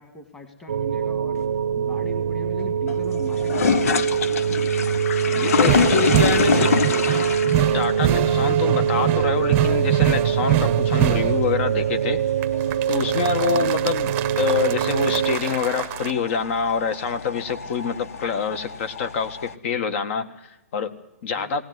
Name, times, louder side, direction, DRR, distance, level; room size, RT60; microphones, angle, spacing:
voice 1, 0.0-4.1 13.3-13.7 21.3-21.6, left 2 dB, 15° left, 6 dB, 2.1 m, -41 dB
sound 1, 0.7-15.4, right 8 dB, 75° right, 0.8 m, -23 dB
sound 2, 1.4-19.5, left 6 dB, 70° left, 1.1 m, -28 dB
voice 2, 5.3-6.7 7.7-12.2 12.9-21.6, left 6 dB, 50° left, 10 dB, 1.8 m, -26 dB
sound 3, 5.6-11.5 12.4-16.1, right 14 dB, 30° right, 0.9 m, -25 dB
20.5 x 17.5 x 9.6 m, 0.87 s
hypercardioid pair, 145°, 8 cm